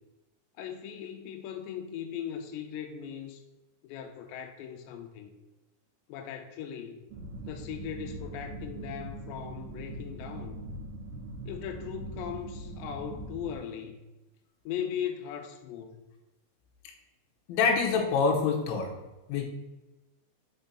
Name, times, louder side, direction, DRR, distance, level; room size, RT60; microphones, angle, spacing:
voice 1, 0.5-3.4 3.8-5.3 6.1-7.1 7.5-10.6 11.5-14.0 14.7-16.0, left 8 dB, 90° left, 5 dB, 2.9 m, -38 dB
sound 1, 7.1-13.6, right 2 dB, 75° right, 2.7 m, -41 dB
voice 2, 17.5-18.9 19.3-19.5, left 5 dB, 70° left, 0 dB, 2.6 m, -25 dB
6.6 x 4.4 x 5.5 m, 1.0 s
omnidirectional pair, 5.0 m